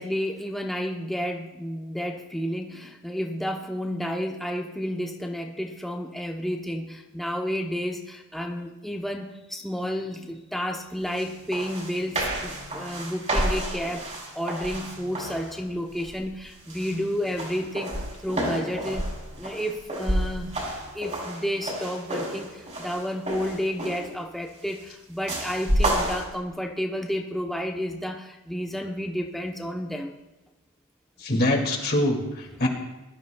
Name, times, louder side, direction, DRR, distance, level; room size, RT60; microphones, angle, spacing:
voice 1, 0.0-19.1 19.4-20.5 20.9-30.1, equal, ahead, 1 dB, 0.7 m, -31 dB
sound 1, 11.2-11.3 11.5-15.6 16.0-16.4 16.7-24.2 25.3-26.2, right 1 dB, 35° right, 3.2 m, -30 dB
voice 2, 31.2-32.7, left 1 dB, 45° left, 1 dB, 2.2 m, -24 dB
21.0 x 12.5 x 2.3 m, 1.0 s
head